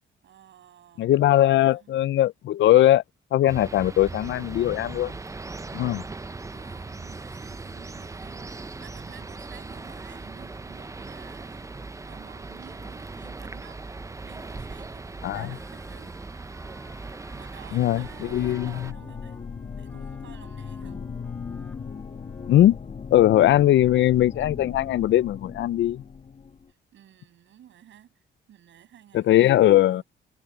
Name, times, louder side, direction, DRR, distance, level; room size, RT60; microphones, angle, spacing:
voice 1, 0.2-1.1 1.5-2.0 6.5-16.2 17.3-19.4 19.8-21.1 26.7-28.1 28.5-30.0, right 11 dB, 70° right, 7.9 m, -52 dB
voice 2, 1.0-3.0 3.3-5.1 5.7-6.0 15.2-15.5 17.7-18.9 22.5-22.8 23.1-26.0 29.1-30.0, left 13 dB, 65° left, 0.6 m, -20 dB
sound 1, 3.5-18.9, right 3 dB, 15° right, 0.7 m, -39 dB
Wind instrument woodwind instrument, 15.1-22.9, left 1 dB, 5° left, 5.7 m, -54 dB
sound 2, 17.9-26.6, left 6 dB, 35° left, 1.7 m, -38 dB
cardioid pair, 90°, 20 cm